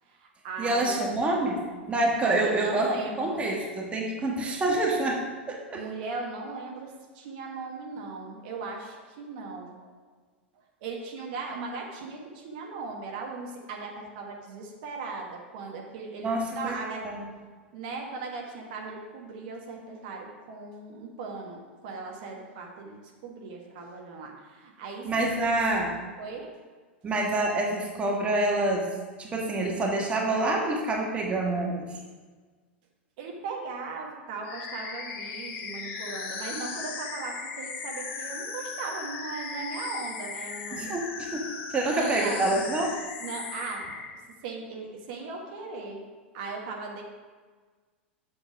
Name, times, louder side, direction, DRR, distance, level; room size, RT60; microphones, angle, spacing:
voice 1, 0.0-1.3 2.2-3.5 5.7-9.9 10.5-17.0 17.7-25.5 26.2-26.5 27.0-27.1 33.2-41.3 41.8-42.5 43.2-46.0 46.3-47.0, right 4 dB, 50° right, 0 dB, 1.5 m, -38 dB
voice 2, 0.6-1.6 1.9-2.9 3.2-5.2 5.5-5.8 16.2-16.7 17.0-17.2 25.0-25.9 27.0-28.9 29.2-31.9 40.7-42.9, right 2 dB, 20° right, -1 dB, 1.4 m, -27 dB
sound 1, 34.4-44.1, left 5 dB, 40° left, 1.8 m, -37 dB
7.9 x 7.1 x 4.8 m, 1.4 s
figure-of-eight pair, 90°, 6 cm